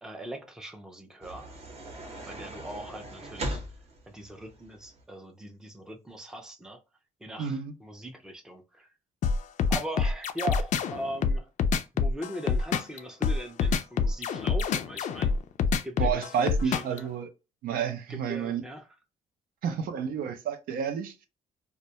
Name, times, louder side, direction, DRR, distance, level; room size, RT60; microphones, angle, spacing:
voice 1, 0.0-1.6 2.3-3.6 4.1-6.8 7.2-8.9 9.7-11.5 11.9-15.3 15.8-17.1 18.1-18.9, right 1 dB, 5° right, 0.4 m, -40 dB
sound 1, 1.2-5.0, right 1 dB, 45° right, 0.7 m, -39 dB
voice 2, 7.4-7.7 16.0-17.3 17.6-18.6 19.6-21.3, right 7 dB, 80° right, 0.5 m, -30 dB
sound 2, 9.2-17.0, left 5 dB, 55° left, 0.4 m, -26 dB
2.1 x 2.1 x 2.7 m
cardioid pair, 135°, 15 cm